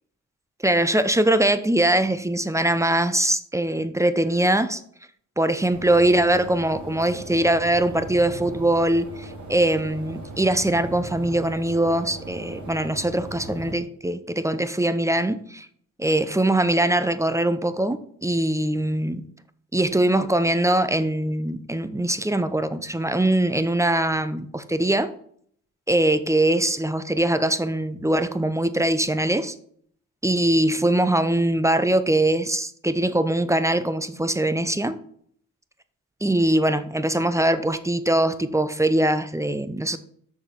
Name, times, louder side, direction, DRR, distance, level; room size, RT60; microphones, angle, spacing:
voice 1, 0.6-4.8 5.4-15.7 16.0-19.2 19.7-25.1 25.9-29.5 30.2-35.0 36.2-40.0, right 1 dB, 10° right, 12 dB, 0.7 m, -22 dB
sound 1, 5.7-13.7, right 2 dB, 55° right, 2.5 m, -39 dB
6.4 x 5.1 x 5.8 m, 0.63 s
supercardioid pair, 55°, 33 cm